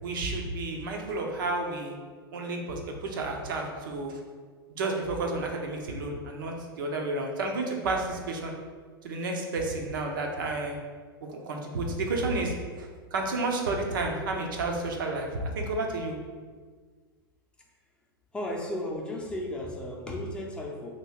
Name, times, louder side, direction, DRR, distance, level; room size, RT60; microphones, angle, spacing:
voice 1, 0.0-1.9 2.3-4.2 4.7-8.5 9.0-10.8 11.3-15.3 15.5-16.2, right 2 dB, 60° right, 2 dB, 0.7 m, -31 dB
voice 2, 18.3-20.9, left 1 dB, 5° left, -2 dB, 0.7 m, -34 dB
3.0 x 2.9 x 4.5 m, 1.5 s
figure-of-eight pair, 95°, 12 cm